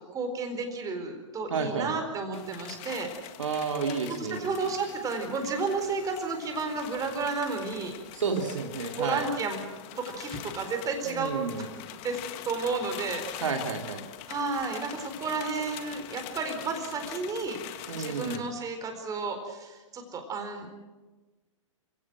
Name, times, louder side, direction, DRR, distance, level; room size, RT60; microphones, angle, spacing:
voice 1, 0.1-3.1 4.1-7.9 8.9-9.6 10.0-11.4 12.0-12.2 12.4-13.4 14.3-17.6 17.9-20.7, right 4 dB, 20° right, 5 dB, 4.3 m, -32 dB
voice 2, 1.5-1.9 3.4-4.5 8.1-9.2 11.0-11.6 13.4-14.0 17.9-18.5, right 5 dB, 70° right, 3 dB, 2.6 m, -31 dB
sound 1, 2.3-18.4, left 12 dB, 40° left, 1.8 m, -43 dB
27.5 x 16.5 x 7.8 m, 1.2 s
figure-of-eight pair, 110°, 17 cm